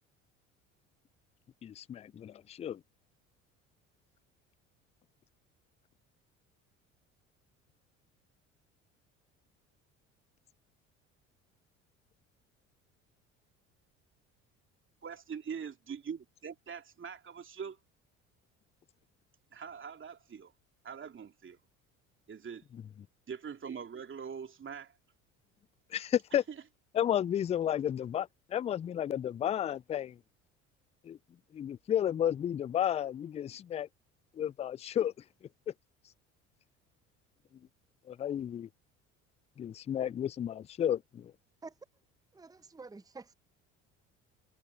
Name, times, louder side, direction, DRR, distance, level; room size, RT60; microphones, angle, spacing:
voice 1, 1.6-2.8 25.9-26.4 26.9-30.2 31.0-31.2 31.5-33.9 34.4-35.1 38.1-38.7 39.6-41.3, left 10 dB, 15° left, 0.4 m, -32 dB
voice 2, 15.0-17.8 19.5-20.5 20.8-21.6 22.3-22.6 23.3-25.0 26.5-26.6, right 6 dB, 30° right, 2.7 m, -43 dB
voice 3, 42.3-43.3, right 4 dB, 10° right, 1.0 m, -48 dB
figure-of-eight pair, 60°, 39 cm